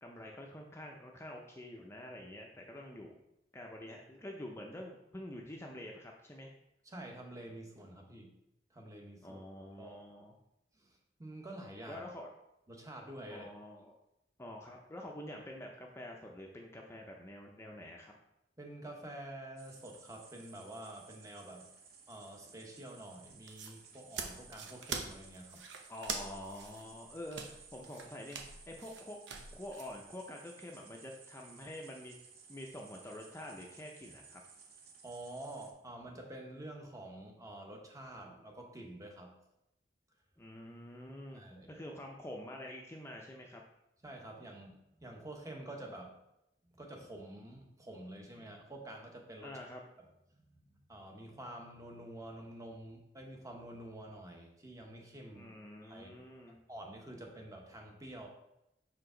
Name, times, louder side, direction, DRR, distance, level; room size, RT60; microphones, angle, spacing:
voice 1, 0.0-3.2 3.5-6.5 9.2-10.3 11.9-12.3 13.3-14.0 14.4-18.1 25.9-29.2 29.5-32.2 32.5-34.4 40.4-41.4 41.7-43.6 49.4-49.8 55.3-56.6, left 1 dB, 15° left, 0 dB, 0.6 m, -47 dB
voice 2, 6.8-8.3 8.7-9.4 9.8-10.0 10.7-12.1 12.7-13.5 18.6-21.7 22.1-25.6 35.0-39.3 41.3-41.7 44.0-46.2 46.8-49.5 50.3-55.5 55.8-56.2 56.7-58.3, right 1 dB, 20° right, 1 dB, 1.0 m, -48 dB
sound 1, 19.6-35.7, right 5 dB, 60° right, 0.9 m, -58 dB
sound 2, 23.3-29.9, right 5 dB, 90° right, 0.8 m, -44 dB
5.8 x 4.8 x 3.8 m, 0.87 s
head